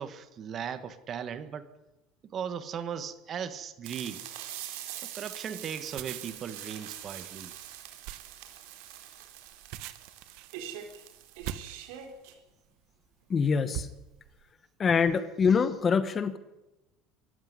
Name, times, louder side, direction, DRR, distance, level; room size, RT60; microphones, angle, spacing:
voice 1, 0.0-1.7 2.2-4.2 5.0-7.5, right 8 dB, 30° right, 12 dB, 1.5 m, -37 dB
sound 1, 3.8-12.3, right 11 dB, 85° right, 4.1 m, -43 dB
sound 2, 5.8-12.5 13.1-13.3 13.7-14.4, right 13 dB, 65° right, 1.4 m, -42 dB
voice 2, 13.3-13.9 14.8-16.4, left 6 dB, 20° left, 13 dB, 1.1 m, -25 dB
24.5 x 14.5 x 9.9 m, 1.0 s
cardioid pair, 165°, 0 cm